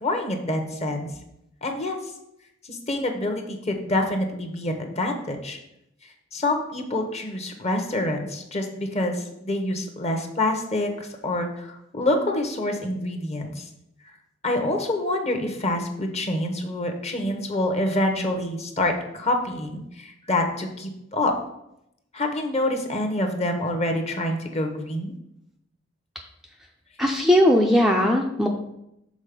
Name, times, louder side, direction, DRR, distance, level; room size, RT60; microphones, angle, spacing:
voice 1, 0.0-1.1 1.6-2.0 2.7-5.6 6.3-10.9 11.2-13.6 14.4-21.3 22.1-25.1, left 1 dB, 35° left, 4 dB, 1.0 m, -26 dB
voice 2, 27.0-28.5, left 1 dB, ahead, 1 dB, 0.4 m, -18 dB
6.3 x 4.0 x 5.2 m, 0.81 s
head